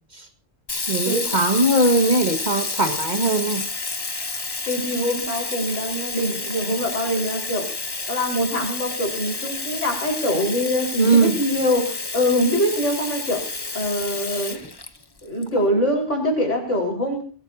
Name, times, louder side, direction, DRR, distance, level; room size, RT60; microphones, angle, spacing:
Sink (filling or washing), 0.7-15.4, left 3 dB, 20° left, 0.9 m, -30 dB
voice 1, 0.9-3.7 11.0-11.4, right 2 dB, 35° right, 6 dB, 1.8 m, -20 dB
voice 2, 4.7-7.7 8.1-13.5 13.7-14.6 15.2-17.2, equal, 80° left, 1 dB, 5.1 m, -24 dB
24.0 x 17.0 x 2.8 m, 0.37 s
omnidirectional pair, 1.2 m